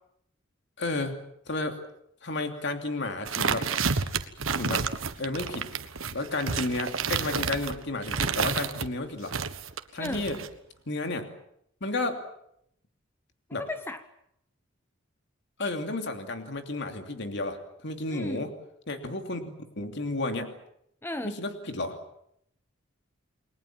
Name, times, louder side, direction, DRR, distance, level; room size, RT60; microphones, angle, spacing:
voice 1, 0.8-1.2 1.5-1.8 2.2-3.7 4.5-4.9 5.2-5.7 6.1-9.3 9.9-10.4 10.9-11.3 11.8-12.2 13.5-13.6 15.6-18.5 18.9-20.5 21.2-22.0, left 2 dB, 60° left, 6 dB, 2.8 m, -32 dB
sound 1, 3.3-8.9 9.3-10.5, right 5 dB, 85° right, 1.5 m, -30 dB
voice 2, 13.5-14.0 18.1-18.5 21.0-21.4, left 1 dB, 10° left, 9 dB, 0.9 m, -35 dB
29.0 x 21.5 x 7.5 m, 0.74 s
head